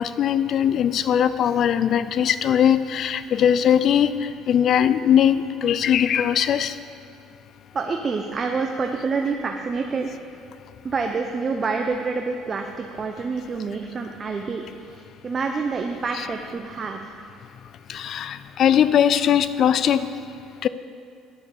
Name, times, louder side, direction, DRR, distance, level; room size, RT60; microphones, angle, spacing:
voice 1, 0.0-6.8 17.9-20.1 20.6-20.7, left 9 dB, 55° left, 14 dB, 0.4 m, -20 dB
voice 2, 7.7-10.1 10.8-17.2, right 4 dB, 35° right, 3 dB, 0.7 m, -27 dB
9.7 x 6.6 x 7.1 m, 2.3 s
supercardioid pair, 75°, 0 cm